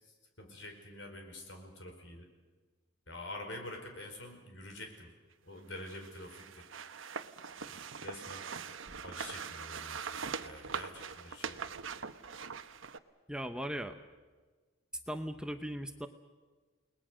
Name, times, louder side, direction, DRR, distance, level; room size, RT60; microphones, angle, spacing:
voice 1, 0.0-2.3 3.1-5.1 5.4-6.7 7.6-8.5 9.0-11.6, left 1 dB, 70° left, 4 dB, 4.9 m, -47 dB
sound 1, 5.7-13.0, right 6 dB, 85° right, 1.0 m, -42 dB
voice 2, 13.3-14.0 15.1-16.1, equal, 5° right, 7 dB, 0.8 m, -38 dB
30.0 x 20.0 x 6.4 m, 1.3 s
head